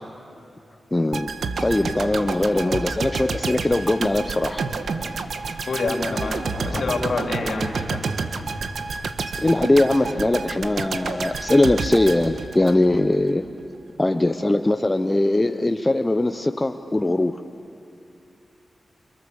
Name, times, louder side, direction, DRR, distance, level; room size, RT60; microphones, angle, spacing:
voice 1, 0.9-1.3 1.6-4.6 9.4-13.4 14.0-17.4, left 2 dB, 20° left, 8 dB, 0.8 m, -21 dB
sound 1, 1.1-13.1 13.4-13.6, right 4 dB, 80° right, 1.5 m, -29 dB
voice 2, 5.7-8.0, left 3 dB, 70° left, 2 dB, 3.3 m, -27 dB
29.5 x 27.5 x 7.2 m, 2.7 s
cardioid pair, 60°, 0 cm